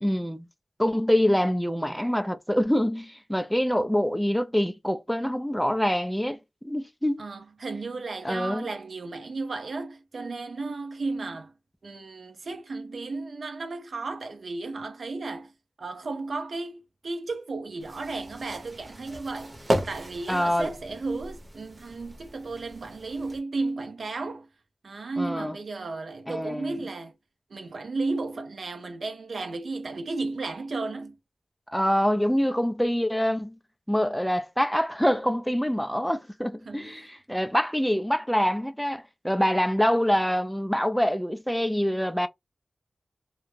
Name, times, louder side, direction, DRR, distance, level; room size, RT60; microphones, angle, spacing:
voice 1, 0.0-0.5 0.8-6.4 6.6-7.3 8.2-8.7 20.3-20.7 25.2-25.6 26.3-26.8 31.7-33.6 33.9-42.3, equal, 5° left, 0.4 m, -25 dB
voice 2, 7.2-11.5 11.8-15.5 15.8-24.5 24.8-27.1 27.5-31.2 36.7-37.1, right 3 dB, 80° right, 0.4 m, -34 dB
sound 1, 17.8-23.4, right 1 dB, 40° right, 0.8 m, -35 dB
2.2 x 2.0 x 3.1 m
wide cardioid pair, 60°, 0 cm